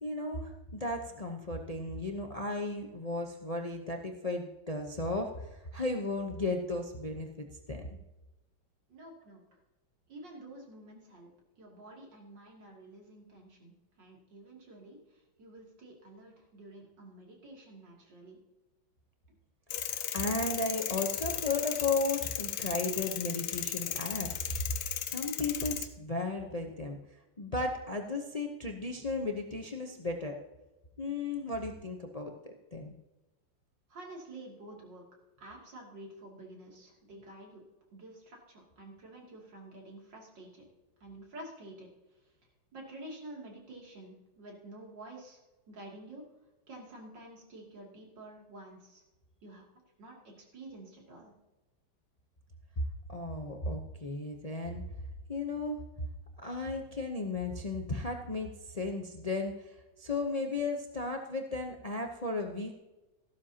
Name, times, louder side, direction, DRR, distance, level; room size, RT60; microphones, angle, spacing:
voice 1, 0.0-7.9 19.8-24.7 25.0-27.0 27.4-30.4 31.0-32.9 52.8-52.9 53.1-54.8 55.3-55.8 56.4-62.7, left 2 dB, 55° left, 3 dB, 0.4 m, -35 dB
voice 2, 8.9-9.4 10.1-11.3 11.6-18.4 19.3-19.4 33.9-35.0 35.4-37.6 37.9-40.6 41.0-41.9 42.7-45.4 45.7-46.2 46.7-49.0 49.4-49.6 50.0-51.3, right 1 dB, 65° right, -1 dB, 3.3 m, -49 dB
sound 1, 19.7-25.9, left 11 dB, 90° left, 1.6 m, -36 dB
14.0 x 12.5 x 2.8 m, 1.1 s
omnidirectional pair, 2.2 m